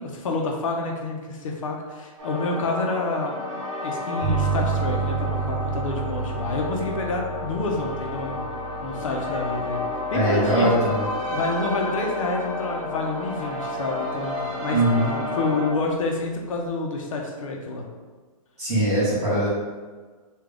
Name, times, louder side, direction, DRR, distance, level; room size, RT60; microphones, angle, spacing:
voice 1, 0.0-3.3 3.8-8.4 8.8-9.8 10.1-10.9 11.3-14.8 15.3-17.8, left 3 dB, 60° left, 0 dB, 0.6 m, -28 dB
sound 1, 2.2-15.7, left 2 dB, 50° right, 1.4 m, -31 dB
sound 2, 4.2-13.5, right 5 dB, 75° right, 0.8 m, -32 dB
voice 2, 10.1-11.1 14.7-15.1 18.6-19.5, right 1 dB, 15° right, -10 dB, 1.3 m, -21 dB
3.6 x 2.3 x 3.4 m, 1.4 s
hypercardioid pair, 170°, 19 cm